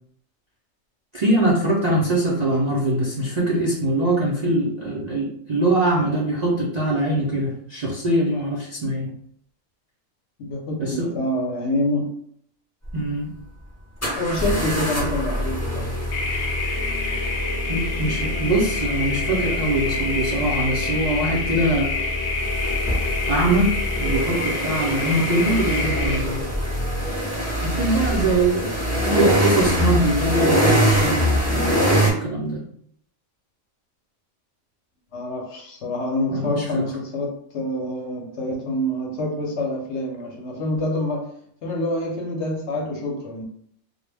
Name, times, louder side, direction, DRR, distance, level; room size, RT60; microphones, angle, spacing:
voice 1, 1.1-9.1 10.8-11.1 12.9-13.3 17.7-21.9 23.3-26.5 27.6-28.8 29.0-32.6 36.3-36.8, right 1 dB, 80° right, -4 dB, 0.3 m, -23 dB
voice 2, 10.4-12.1 14.2-15.9 35.1-41.3 41.6-43.4, left 1 dB, 65° left, 0 dB, 0.8 m, -26 dB
sound 1, 12.8-12.9 14.0-32.1, equal, 25° left, 0.3 m, -24 dB
sound 2, 16.1-26.2, left 3 dB, 90° left, 1.0 m, -28 dB
2.2 x 2.0 x 3.2 m, 0.66 s
omnidirectional pair, 1.4 m